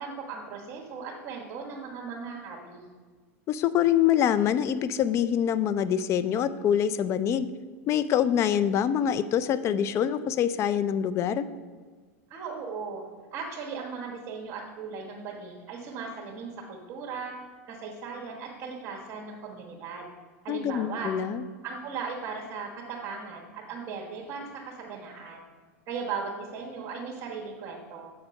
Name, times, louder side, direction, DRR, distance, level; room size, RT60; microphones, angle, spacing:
voice 1, 0.0-2.9 12.3-13.0 13.3-17.3 17.7-20.0 20.4-21.1 21.6-25.4 25.9-28.1, right 5 dB, 40° right, -3 dB, 1.4 m, -37 dB
voice 2, 3.5-7.5 7.9-11.5 20.5-21.4, left 9 dB, 35° left, 13 dB, 0.4 m, -25 dB
7.7 x 4.4 x 5.3 m, 1.5 s
hypercardioid pair, 115°, 8 cm